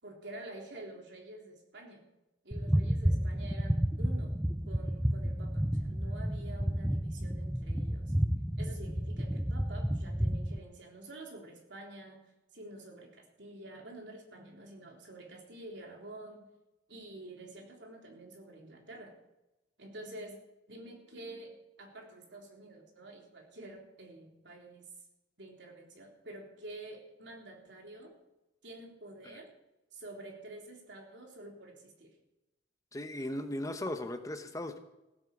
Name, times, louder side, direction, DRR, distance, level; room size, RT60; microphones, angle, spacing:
voice 1, 0.0-2.0 2.4-4.4 4.7-8.1 8.6-12.2 12.5-16.5 16.9-19.1 19.8-20.4 20.7-24.9 25.4-28.1 28.6-29.5 29.9-32.1, right 2 dB, 70° right, 1 dB, 3.6 m, -48 dB
sound 1, 2.5-10.6, equal, 5° right, 0.4 m, -31 dB
voice 2, 32.9-34.8, left 1 dB, 20° left, 8 dB, 0.9 m, -37 dB
16.0 x 9.0 x 7.1 m, 0.97 s
head